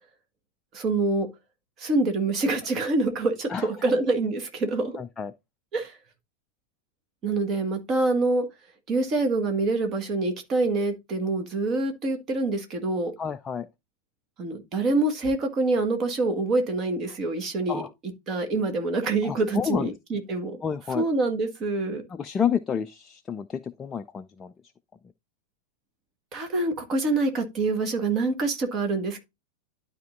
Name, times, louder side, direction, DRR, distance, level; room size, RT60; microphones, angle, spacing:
voice 1, 0.7-1.3 1.8-5.0 5.7-5.9 7.2-8.5 8.9-13.1 14.4-17.8 18.3-20.6 20.9-22.0 26.3-29.2, right 2 dB, 30° right, 1.8 m, -26 dB
voice 2, 3.5-3.9 5.0-5.3 13.2-13.7 17.7-17.9 19.2-20.0 20.6-21.1 22.1-24.5, left 7 dB, 20° left, 0.4 m, -30 dB
12.0 x 4.4 x 2.6 m
figure-of-eight pair, 90°, 0 cm